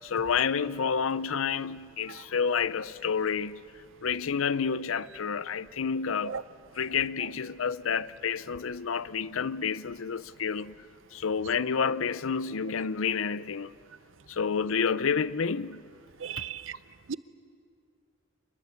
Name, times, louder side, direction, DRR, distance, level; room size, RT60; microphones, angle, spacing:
voice 1, 0.0-3.6 4.0-6.4 6.8-10.7 11.1-13.7 14.3-15.8 16.4-16.5, left 6 dB, 85° left, 0.6 m, -29 dB
voice 2, 16.2-16.6 17.1-17.2, right 7 dB, 70° right, 0.7 m, -34 dB
26.0 x 22.0 x 8.3 m
head